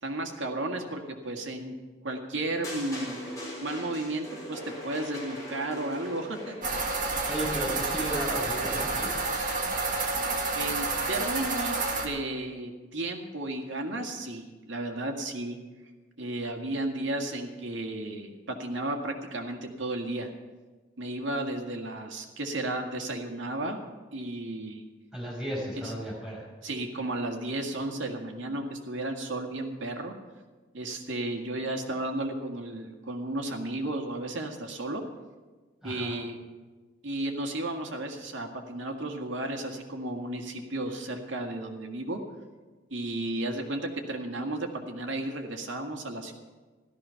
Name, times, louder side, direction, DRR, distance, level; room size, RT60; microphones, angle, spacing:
voice 1, 0.0-1.7 2.0-3.2 3.6-6.6 10.5-15.6 16.2-20.3 21.0-23.8 24.1-24.9 25.8-25.9 26.6-30.1 30.7-35.0 35.8-36.4 37.0-42.2 42.9-46.3, right 2 dB, 90° right, 3 dB, 2.0 m, -33 dB
sound 1, 2.6-6.9, left 1 dB, 20° left, 4.9 m, -40 dB
sound 2, 6.6-12.1, right 3 dB, 45° right, 2.0 m, -29 dB
voice 2, 7.3-9.1 25.1-26.5 35.8-36.2, right 1 dB, 5° right, -5 dB, 5.6 m, -34 dB
15.0 x 13.0 x 5.8 m, 1.3 s
head